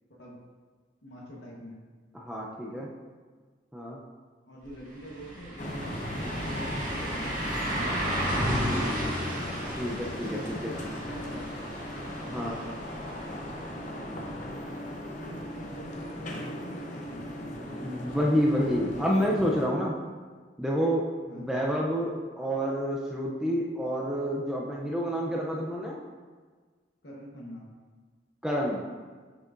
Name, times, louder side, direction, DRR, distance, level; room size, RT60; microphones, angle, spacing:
voice 1, 1.0-1.8 2.7-2.9 4.5-7.4 7.7-9.1 10.2-11.7 14.4-18.0 21.2-21.5 27.0-27.7, equal, 60° left, -3 dB, 1.1 m, -45 dB
voice 2, 2.1-2.9 3.7-4.0 9.8-10.7 12.3-12.6 17.7-19.9 20.6-21.1 21.4-26.0 28.4-28.8, equal, 5° right, -3 dB, 0.4 m, -28 dB
sound 1, 4.6-4.7 5.0-14.8 15.2-15.3 18.1-18.2, equal, 45° right, 1.3 m, -34 dB
sound 2, 5.6-19.7, left 1 dB, 40° left, 0.7 m, -38 dB
6.4 x 6.1 x 2.5 m, 1.5 s
head